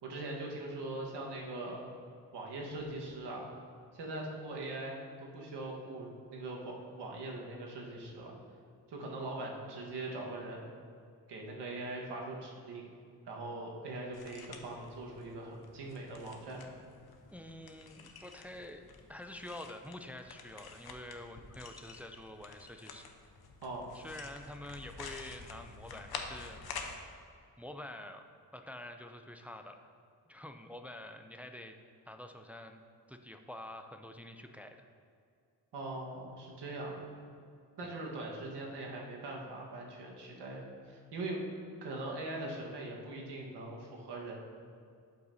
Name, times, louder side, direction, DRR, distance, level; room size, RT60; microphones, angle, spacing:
voice 1, 0.0-1.8 2.3-3.4 3.9-8.3 8.9-10.6 11.3-12.9 13.3-16.7 23.6-23.8 35.7-37.1 37.8-41.5 41.8-44.3, right 2 dB, 80° right, -1 dB, 1.4 m, -41 dB
sound 1, 14.1-27.0, left 5 dB, 65° left, 0.8 m, -49 dB
voice 2, 17.3-18.8 19.1-23.1 23.9-26.6 27.6-28.2 28.5-29.9 30.3-31.8 32.1-32.8 33.1-34.9 37.8-37.9, left 1 dB, 5° right, 5 dB, 0.3 m, -47 dB
11.5 x 5.7 x 2.7 m, 2.3 s
cardioid pair, 105°, 40 cm